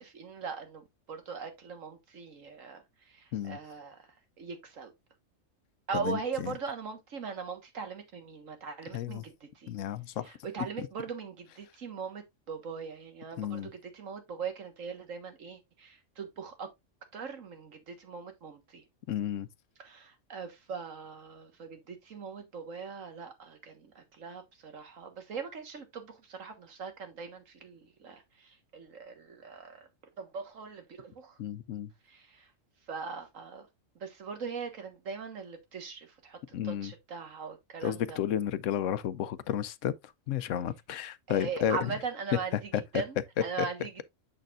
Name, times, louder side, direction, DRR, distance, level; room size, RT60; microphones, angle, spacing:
voice 1, 0.0-2.8 3.1-4.0 4.4-4.9 5.9-9.7 10.4-16.7 17.1-18.8 19.8-29.9 30.2-31.3 32.1-32.4 32.9-33.6 34.0-36.4 36.6-38.2 41.3-42.5 42.9-44.0, right 5 dB, 80° right, 1.8 m, -40 dB
voice 2, 5.9-6.6 8.9-9.2 9.7-10.9 13.4-13.7 19.1-19.5 31.4-31.9 36.5-36.9 37.8-39.9 40.3-41.9 42.5-42.8 43.6-43.7, left 10 dB, 75° left, 0.9 m, -32 dB
7.4 x 6.5 x 2.4 m
omnidirectional pair, 1.4 m